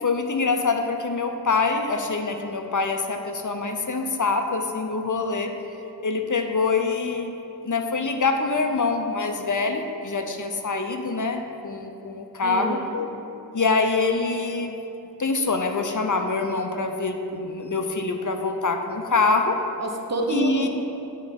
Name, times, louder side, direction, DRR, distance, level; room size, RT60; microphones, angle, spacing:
voice 1, 0.0-5.5 6.0-7.3 7.6-13.1 13.5-14.8 15.2-19.6 20.3-20.7, left 4 dB, 55° left, 5 dB, 0.6 m, -25 dB
voice 2, 12.4-13.1 19.8-20.7, right 2 dB, 45° right, 2 dB, 0.8 m, -28 dB
8.7 x 4.1 x 5.1 m, 2.8 s
wide cardioid pair, 50°, 37 cm